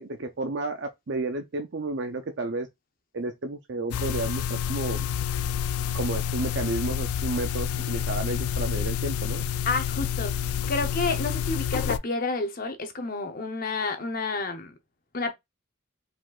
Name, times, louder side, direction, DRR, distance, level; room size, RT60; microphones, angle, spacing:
voice 1, 0.0-2.7 3.1-5.0 5.9-9.4, right 2 dB, 55° right, 0.5 m, -32 dB
sound 1, 3.9-12.0, left 8 dB, 85° left, 0.3 m, -28 dB
voice 2, 9.6-14.7 15.1-15.3, left 3 dB, 40° left, 0.7 m, -30 dB
4.9 x 3.9 x 2.4 m
head